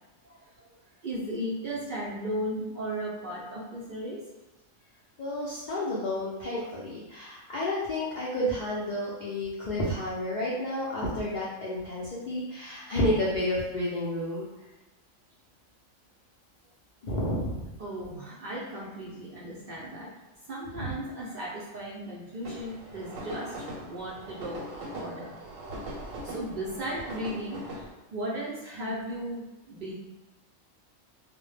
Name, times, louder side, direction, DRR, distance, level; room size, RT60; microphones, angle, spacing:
voice 1, 1.0-4.2 17.8-20.1 20.5-25.3 26.2-27.6 28.1-29.9, right 1 dB, 65° right, -6 dB, 0.5 m, -36 dB
voice 2, 5.2-14.5 17.0-17.7 20.8-20.9, left 1 dB, 75° left, -6 dB, 0.4 m, -30 dB
sound 1, 22.4-27.9, right 1 dB, 85° right, 1.0 m, -40 dB
2.1 x 2.0 x 3.1 m, 1.0 s
omnidirectional pair, 1.3 m